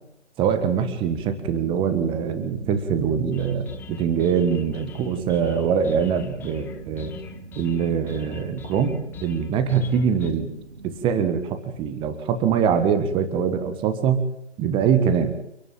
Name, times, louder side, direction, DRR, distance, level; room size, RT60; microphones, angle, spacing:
voice 1, 0.4-7.1 7.6-10.5 10.8-14.2 14.6-15.3, right 7 dB, 15° right, 9 dB, 1.6 m, -23 dB
sound 1, 1.0-11.1, right 4 dB, 60° right, 3.2 m, -42 dB
sound 2, 3.3-10.3, left 9 dB, 5° left, 0.8 m, -43 dB
29.5 x 11.0 x 8.6 m, 0.78 s
figure-of-eight pair, 140°, 36 cm